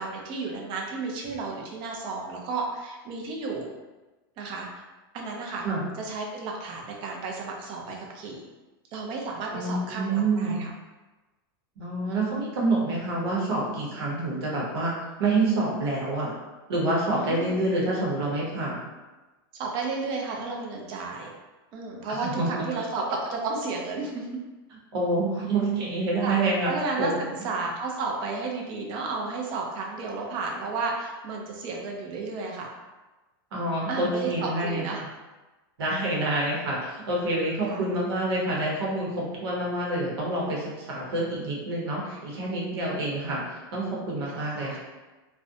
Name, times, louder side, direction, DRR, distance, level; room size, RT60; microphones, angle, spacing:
voice 1, 0.0-3.7 4.4-4.8 5.1-5.6 6.0-8.4 8.9-10.7 17.1-17.5 19.5-21.3 21.7-24.3 26.2-32.7 33.9-35.0 37.6-37.8 44.3-44.8, right 3 dB, 40° right, 0 dB, 0.5 m, -32 dB
voice 2, 9.5-10.6 11.8-14.9 15.2-16.3 16.7-18.8 22.1-22.8 24.9-26.7 27.0-27.2 33.5-34.8 35.8-43.4 43.7-44.8, right 2 dB, 90° right, -4 dB, 0.9 m, -27 dB
2.5 x 2.1 x 2.5 m, 1.2 s
supercardioid pair, 140°, 13 cm